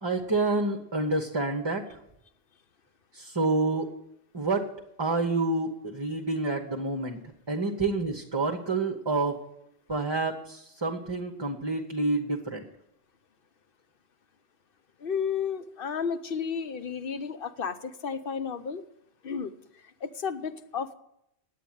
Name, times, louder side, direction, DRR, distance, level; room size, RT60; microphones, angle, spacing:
voice 1, 0.0-1.8 3.1-3.9 4.3-4.6 5.0-7.2 7.5-9.4 9.9-12.6, right 3 dB, 25° right, 3 dB, 1.1 m, -28 dB
voice 2, 15.0-18.8 19.2-19.5 20.0-20.9, left 6 dB, 60° left, 11 dB, 1.0 m, -32 dB
10.0 x 8.5 x 9.1 m, 0.78 s
omnidirectional pair, 1.1 m